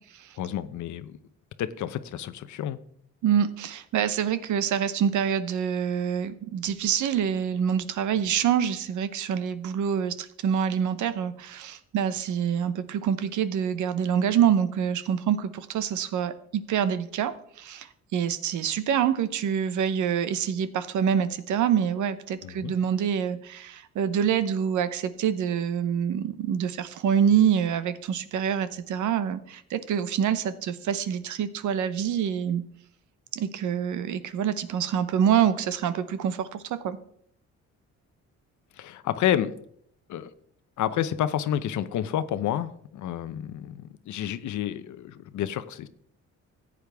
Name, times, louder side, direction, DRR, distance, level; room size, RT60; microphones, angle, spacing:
voice 1, 0.4-1.2 1.6-2.8 22.4-22.7 38.7-39.5 40.1-40.3 40.8-45.9, left 11 dB, 75° left, 13 dB, 0.8 m, -30 dB
voice 2, 3.2-32.6 33.3-37.0, right 8 dB, 75° right, 13 dB, 0.9 m, -26 dB
14.5 x 8.5 x 3.5 m, 0.67 s
cardioid pair, 90°, 30 cm